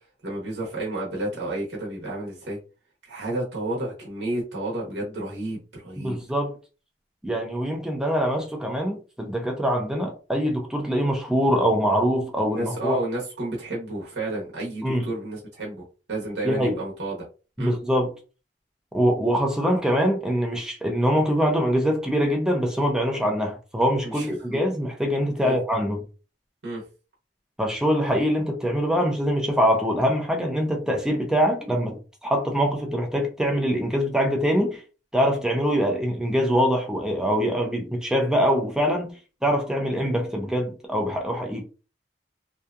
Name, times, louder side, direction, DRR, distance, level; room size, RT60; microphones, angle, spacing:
voice 1, 0.2-2.6 3.0-6.2 12.5-15.8 16.1-17.2 17.6-17.7 24.0-24.6 25.4-25.5 26.6-26.8, right 2 dB, 75° right, 0.8 m, -31 dB
voice 2, 6.0-6.5 7.2-13.0 14.8-15.1 16.4-16.8 17.6-18.1 18.9-26.0 27.6-34.8 35.1-39.1 39.4-41.6, equal, 5° right, 0.4 m, -23 dB
2.7 x 2.3 x 2.3 m
head